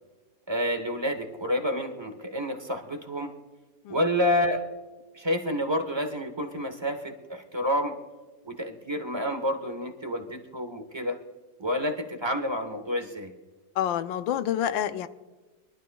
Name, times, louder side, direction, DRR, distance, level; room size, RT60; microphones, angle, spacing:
voice 1, 0.5-3.3 3.9-4.6 5.1-8.0 8.4-11.2 11.6-13.3, equal, 20° right, 4 dB, 0.7 m, -29 dB
voice 2, 13.8-15.1, left 10 dB, 80° left, 11 dB, 1.4 m, -27 dB
23.5 x 12.0 x 2.3 m, 1.2 s
omnidirectional pair, 2.1 m